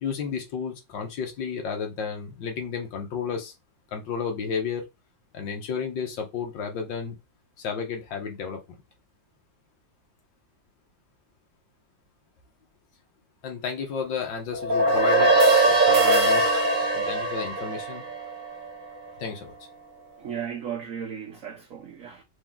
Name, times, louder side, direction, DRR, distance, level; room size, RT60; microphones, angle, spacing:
voice 1, 0.0-3.5 3.9-4.8 5.3-7.2 7.6-8.6 13.4-15.3 15.7-16.5 16.9-18.0 19.2-19.5, left 6 dB, 85° left, 1.8 m, -32 dB
sound 1, 14.5-19.1, right 2 dB, 35° right, 0.8 m, -21 dB
voice 2, 20.2-22.2, right 8 dB, 60° right, 1.0 m, -35 dB
4.7 x 2.8 x 3.6 m
omnidirectional pair, 1.9 m